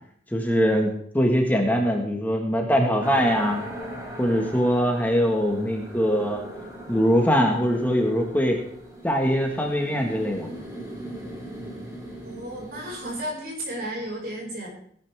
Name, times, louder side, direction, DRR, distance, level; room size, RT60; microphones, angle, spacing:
voice 1, 0.3-3.6 4.2-6.4 6.9-8.6 9.0-10.5, equal, 10° left, 2 dB, 1.7 m, -22 dB
sound 1, 3.0-13.2, right 1 dB, 20° right, 3.8 m, -39 dB
voice 2, 12.2-14.7, right 1 dB, 60° right, -2 dB, 5.5 m, -33 dB
17.5 x 11.5 x 3.6 m, 0.64 s
head